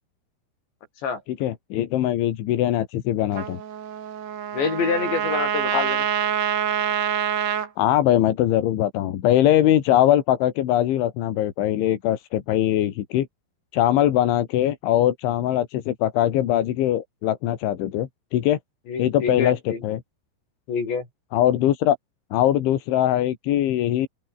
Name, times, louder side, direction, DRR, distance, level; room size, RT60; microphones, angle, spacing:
voice 1, 1.4-3.6 5.7-5.8 7.8-13.3 13.7-18.6 19.0-20.0 21.3-22.0 22.3-24.1, left 12 dB, 90° left, 4.3 m, -21 dB
Trumpet, 3.3-7.7, right 9 dB, 65° right, 4.7 m, -26 dB
voice 2, 4.5-6.1 18.9-19.8 20.7-21.1, left 5 dB, 70° left, 9.0 m, -26 dB
open air
omnidirectional pair, 5.3 m